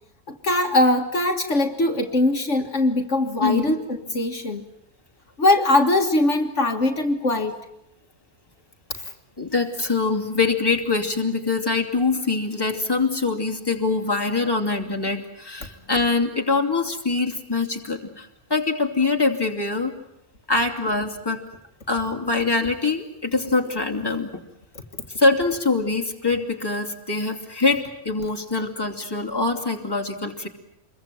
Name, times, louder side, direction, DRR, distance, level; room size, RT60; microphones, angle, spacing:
voice 1, 0.3-3.8 4.1-4.6 5.4-7.5, left 2 dB, 60° left, 4 dB, 2.0 m, -21 dB
voice 2, 3.4-3.8 9.4-19.9 20.5-21.4 21.9-24.4 25.2-30.5, left 3 dB, 15° left, 2 dB, 2.8 m, -24 dB
27.0 x 22.5 x 9.2 m, 0.79 s
omnidirectional pair, 1.4 m